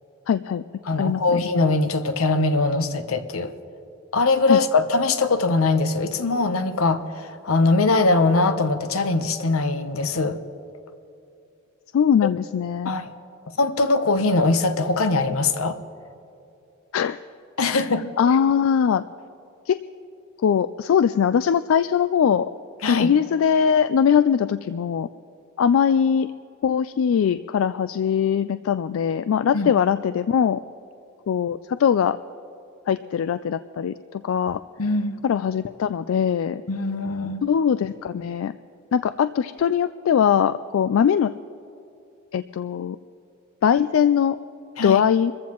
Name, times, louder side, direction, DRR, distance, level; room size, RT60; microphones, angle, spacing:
voice 1, 0.3-0.6 1.0-1.4 4.5-4.6 11.9-12.9 16.9-17.2 17.7-17.8 18.2-19.0 19.7-19.8 20.4-22.5 22.9-25.1 25.6-26.3 26.6-30.6 31.3-32.2 32.9-34.6 35.2-36.6 37.4-38.5 38.9-41.3 42.3-43.0 43.6-44.4 44.8-45.3, left 7 dB, 70° left, 13 dB, 0.3 m, -21 dB
voice 2, 0.8-3.5 4.1-10.4 12.8-13.1 13.6-15.8 17.6-18.1 22.8-23.1 29.5-29.7 34.8-35.2 36.7-37.4 44.8-45.0, left 3 dB, 85° left, 10 dB, 0.8 m, -21 dB
26.0 x 14.5 x 3.0 m, 2.7 s
head